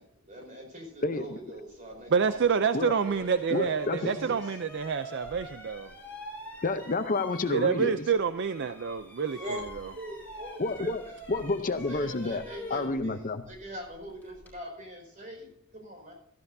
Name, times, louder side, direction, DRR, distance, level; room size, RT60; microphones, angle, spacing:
voice 1, 0.0-2.6 4.0-4.6 9.3-9.6 9.9-11.1 11.7-16.1, equal, 35° right, 1 dB, 5.0 m, -42 dB
voice 2, 1.0-1.4 2.7-3.0 3.5-4.1 6.6-8.1 10.6-11.0 11.3-12.4 12.7-13.4, left 3 dB, 40° left, 9 dB, 0.6 m, -29 dB
voice 3, 2.1-5.9 7.5-9.9, right 6 dB, 55° right, 11 dB, 0.4 m, -28 dB
sound 1, 2.3-2.5 3.0-8.1 8.4-14.6, left 1 dB, 10° left, 4.5 m, -45 dB
16.5 x 14.0 x 2.7 m, 0.78 s
head